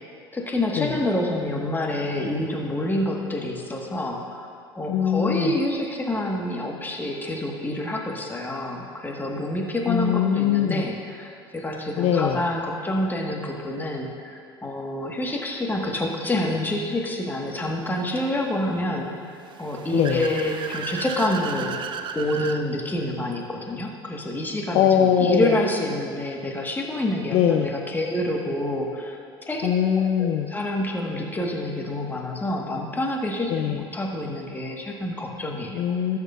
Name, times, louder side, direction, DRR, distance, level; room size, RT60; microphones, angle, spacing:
voice 1, 0.3-4.5 4.8-19.1 19.6-21.8 22.2-29.7 30.2-35.8, left 1 dB, 15° left, 0 dB, 1.7 m, -27 dB
voice 2, 4.9-5.5 9.9-10.9 12.0-12.4 19.9-20.3 24.7-25.6 27.3-27.7 29.6-30.5 33.5-33.9 35.7-36.2, left 9 dB, 50° left, 4 dB, 0.5 m, -22 dB
Car / Accelerating revving vroom, 19.4-22.6, right 6 dB, 40° right, 0.5 m, -34 dB
18.5 x 6.7 x 2.6 m, 2.4 s
figure-of-eight pair, 65°, 13 cm